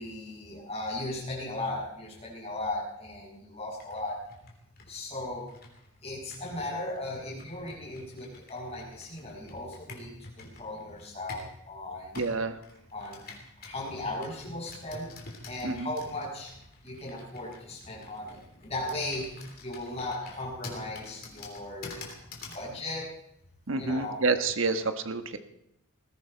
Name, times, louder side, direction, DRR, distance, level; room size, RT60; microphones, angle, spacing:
voice 1, 0.0-4.2 4.9-5.5 6.0-12.2 12.9-13.3 13.6-15.2 15.4-16.5 16.8-22.1 22.5-23.1 23.7-24.2, left 2 dB, 30° left, -4 dB, 6.5 m, -37 dB
Computer keyboard, 3.7-11.6 12.1-22.7, left 3 dB, 45° left, 3.3 m, -48 dB
voice 2, 12.1-12.6 15.6-15.9 23.7-25.4, right 3 dB, 65° right, 9 dB, 1.3 m, -28 dB
20.5 x 15.5 x 4.5 m, 0.80 s
head